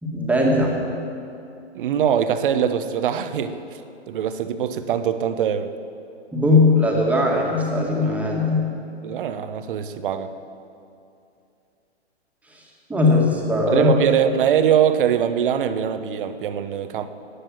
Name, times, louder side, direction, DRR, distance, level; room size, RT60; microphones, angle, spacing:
voice 1, 0.0-0.8 6.3-8.7 12.9-13.9, left 2 dB, 5° right, -2 dB, 2.0 m, -19 dB
voice 2, 1.7-3.8 4.1-5.8 9.0-10.3 13.7-17.1, right 9 dB, 50° right, 10 dB, 1.0 m, -22 dB
15.0 x 9.7 x 7.8 m, 2.6 s
hypercardioid pair, 135°, 33 cm